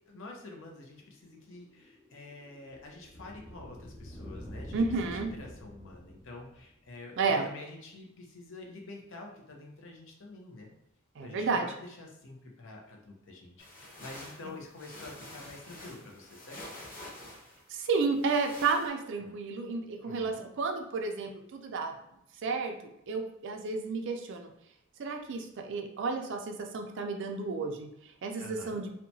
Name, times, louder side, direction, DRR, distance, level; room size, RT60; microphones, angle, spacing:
voice 1, 0.1-10.7 11.2-16.6 19.2-19.3 20.0-20.5 28.4-28.8, left 2 dB, 65° left, 0 dB, 0.6 m, -48 dB
sound 1, 1.3-6.9, equal, 15° left, 0.4 m, -47 dB
voice 2, 4.7-5.3 7.2-7.5 11.2-11.7 17.7-21.9 22.4-22.7 23.1-24.5 25.0-27.9 28.2-28.9, right 4 dB, 60° right, 4 dB, 0.4 m, -31 dB
sound 2, 13.6-18.9, left 1 dB, 40° left, 0.9 m, -48 dB
2.8 x 2.2 x 2.6 m, 0.79 s
head